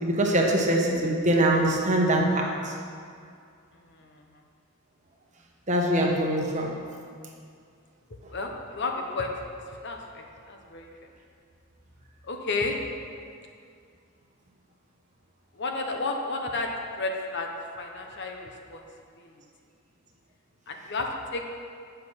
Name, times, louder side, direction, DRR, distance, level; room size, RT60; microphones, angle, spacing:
voice 1, 0.0-2.5 5.7-6.7, right 1 dB, 35° right, -1 dB, 1.1 m, -23 dB
voice 2, 3.9-4.2 8.3-9.3 9.8-10.9 12.2-12.8 15.6-16.7 17.0-17.5 17.8-18.8 19.2-19.3 20.7-21.5, left 3 dB, 50° left, 2 dB, 0.9 m, -32 dB
8.5 x 6.7 x 5.6 m, 2.3 s
head